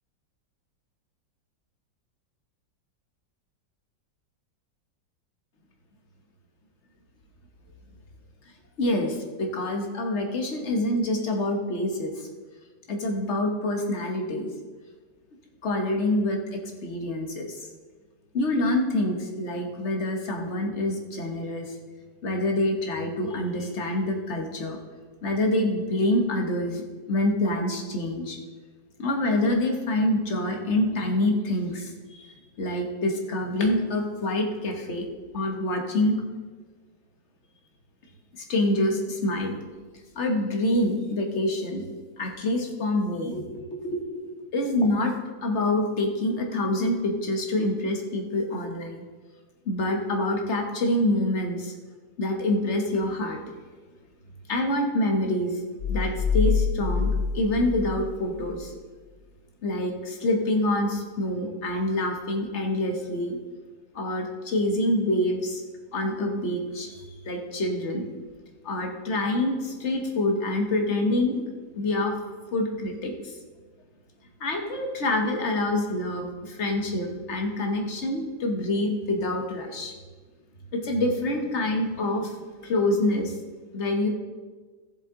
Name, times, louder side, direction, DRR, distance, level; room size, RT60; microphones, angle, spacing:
voice 1, 8.8-12.3 12.9-14.5 15.6-17.6 18.3-21.7 22.2-24.8 25.2-26.8 27.1-28.4 29.0-32.3 32.6-35.0 35.3-36.2 38.4-39.6 40.1-41.8 42.2-45.1 45.4-49.0 49.7-51.7 52.2-53.4 54.5-55.6 55.9-58.7 59.6-63.4 63.9-65.6 65.9-68.1 68.6-71.4 71.8-72.1 72.5-73.4 74.4-79.9 80.7-83.4 83.7-84.1, left 1 dB, 40° left, 2 dB, 1.3 m, -26 dB
sound 1, 55.8-58.7, left 5 dB, 70° left, 0.9 m, -26 dB
14.0 x 7.4 x 3.8 m, 1.4 s
omnidirectional pair, 2.0 m